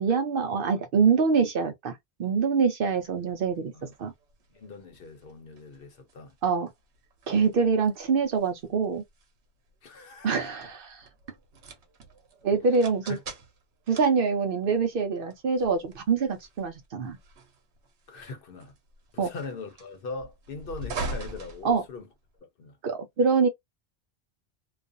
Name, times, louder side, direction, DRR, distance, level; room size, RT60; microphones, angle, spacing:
voice 1, 0.0-4.1 6.4-6.7 7.3-9.0 10.2-11.1 12.4-13.2 13.9-17.2 19.2-19.3 21.6-21.8 22.8-23.5, right 5 dB, 60° right, 0.7 m, -25 dB
sound 1, 3.0-22.4, right 2 dB, 80° right, 1.0 m, -44 dB
voice 2, 4.5-6.3 9.8-10.5 13.1-13.2 18.1-18.7 19.1-22.1 22.6-22.8, left 4 dB, 60° left, 0.9 m, -41 dB
2.4 x 2.3 x 2.4 m
omnidirectional pair, 1.1 m